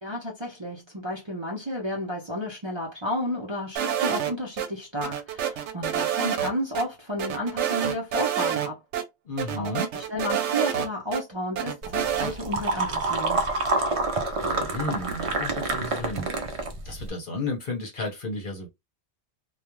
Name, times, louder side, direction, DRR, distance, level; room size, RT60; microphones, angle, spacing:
voice 1, 0.0-8.8 9.6-13.5, equal, 30° right, 0.7 m, -32 dB
sound 1, 3.8-4.7 5.0-6.5 6.8-6.9 7.2-8.7 8.9-9.0 9.4-11.2 11.6-12.3, right 9 dB, 80° right, 0.9 m, -27 dB
voice 2, 9.3-9.9 14.4-16.3 16.8-18.7, left 2 dB, 50° left, 0.9 m, -33 dB
sound 2, 11.8-17.1, right 3 dB, 55° right, 0.3 m, -28 dB
2.4 x 2.3 x 2.9 m
omnidirectional pair, 1.2 m